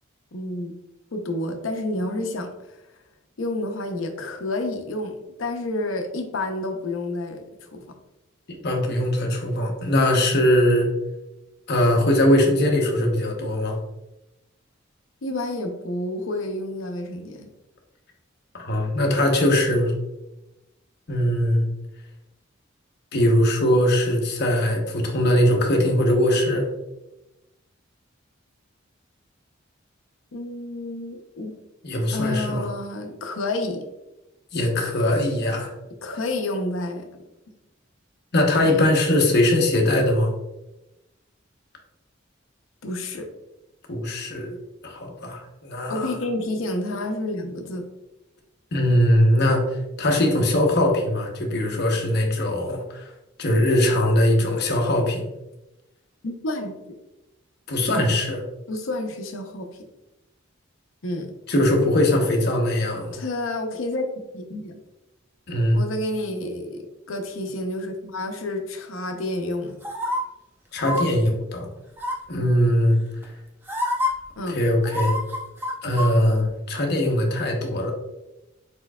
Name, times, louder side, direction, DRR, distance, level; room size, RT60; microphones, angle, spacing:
voice 1, 0.3-0.7 1.1-2.8 3.4-7.9 15.2-17.5 30.3-31.6 32.1-33.8 36.0-37.1 38.6-38.9 42.8-43.3 45.9-47.9 56.2-56.8 58.7-59.8 61.0-61.3 63.1-64.0 64.3-64.8 65.7-69.8 74.4-74.6, left 2 dB, 85° left, 4 dB, 0.7 m, -29 dB
voice 2, 8.6-10.9 11.7-13.8 18.5-19.9 21.1-21.7 23.1-26.7 31.8-32.7 34.5-35.7 38.3-40.3 43.9-44.6 44.8-46.1 48.7-49.7 50.0-53.1 53.4-55.2 57.7-58.4 61.5-63.2 65.5-65.8 70.7-71.7 72.3-73.0 74.5-75.2 75.8-77.9, left 1 dB, 55° left, 1 dB, 0.9 m, -21 dB
sound 1, 69.8-70.2 70.8-71.0 72.0-72.4 73.2-73.3 73.7-74.1 74.9-76.1 76.4-76.5, left 1 dB, 10° right, 0.7 m, -26 dB
4.5 x 4.4 x 2.3 m, 0.96 s
head